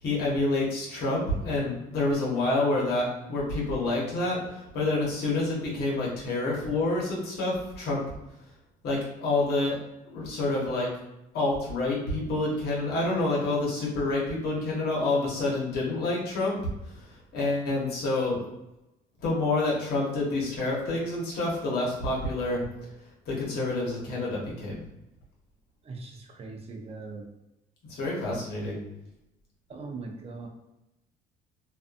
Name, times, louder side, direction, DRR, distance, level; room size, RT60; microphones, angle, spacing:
voice 1, 0.0-8.0 8.8-9.8 10.0-10.9 11.3-16.6 16.9-17.1 17.3-18.4 19.2-22.6 23.3-24.8 27.9-28.8, left 2 dB, 70° left, -4 dB, 1.1 m, -28 dB
voice 2, 25.8-27.2 29.7-30.5, right 3 dB, 35° right, 2 dB, 0.6 m, -40 dB
2.5 x 2.4 x 2.5 m, 0.91 s
cardioid pair, 110°, 17 cm